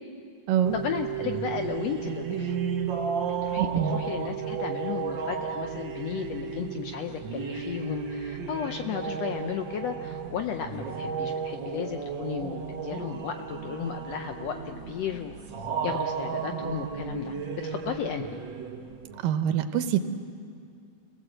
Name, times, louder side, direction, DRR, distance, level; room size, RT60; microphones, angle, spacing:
sound 1, 0.6-19.2, right 6 dB, 55° right, 1.3 m, -33 dB
voice 1, 0.7-2.5 3.2-15.3 15.8-17.3 17.6-18.4, left 8 dB, 80° left, 6 dB, 1.4 m, -34 dB
voice 2, 3.6-4.0 19.2-20.0, right 9 dB, 85° right, 8 dB, 2.5 m, -25 dB
27.5 x 17.5 x 7.9 m, 2.3 s
omnidirectional pair, 3.9 m